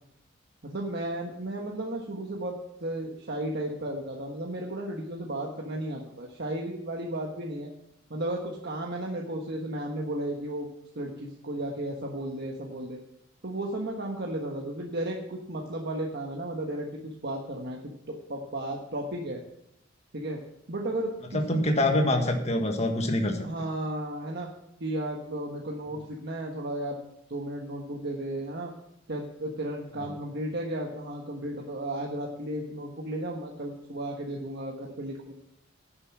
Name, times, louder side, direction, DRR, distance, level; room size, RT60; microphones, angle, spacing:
voice 1, 0.6-7.7 8.1-10.7 10.9-13.0 13.4-19.4 20.1-20.4 20.7-21.6 23.4-24.5 24.8-27.0 27.3-28.7 29.1-35.3, right 1 dB, 55° right, 0 dB, 1.3 m, -34 dB
voice 2, 21.3-23.4, left 1 dB, 35° left, 4 dB, 1.7 m, -25 dB
11.0 x 6.9 x 7.3 m, 0.76 s
head